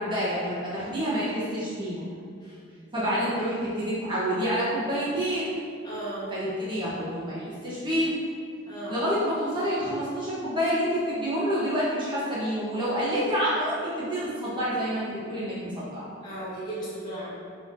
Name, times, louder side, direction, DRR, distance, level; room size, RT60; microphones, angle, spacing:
voice 1, 0.0-2.0 2.9-5.6 6.3-8.2 8.9-16.0, equal, 25° right, -9 dB, 1.0 m, -28 dB
voice 2, 5.8-6.3 8.6-9.0 16.2-17.3, right 1 dB, 20° left, -9 dB, 1.1 m, -36 dB
4.8 x 3.6 x 2.6 m, 2.3 s
head